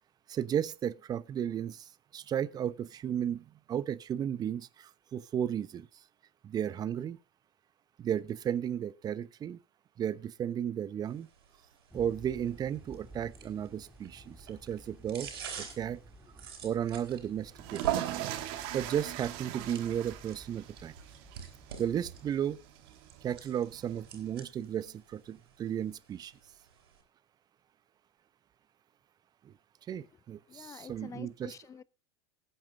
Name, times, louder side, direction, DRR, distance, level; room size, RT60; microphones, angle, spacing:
voice 1, 0.3-5.9 6.4-7.2 8.0-9.6 10.0-11.3 11.9-15.3 15.6-16.0 16.6-18.4 18.7-20.9 21.8-22.6 23.2-26.3 29.4-29.5 29.9-31.5, right 9 dB, 30° right, 0.9 m, -34 dB
sound 1, 11.1-27.0, right 6 dB, 75° right, 4.5 m, -50 dB
sound 2, 11.9-22.3, right 1 dB, 10° right, 3.9 m, -54 dB
sound 3, 17.5-24.3, right 14 dB, 60° right, 1.9 m, -39 dB
voice 2, 30.5-31.8, left 7 dB, 25° left, 0.8 m, -48 dB
20.0 x 9.0 x 2.6 m
hypercardioid pair, 85°, 13 cm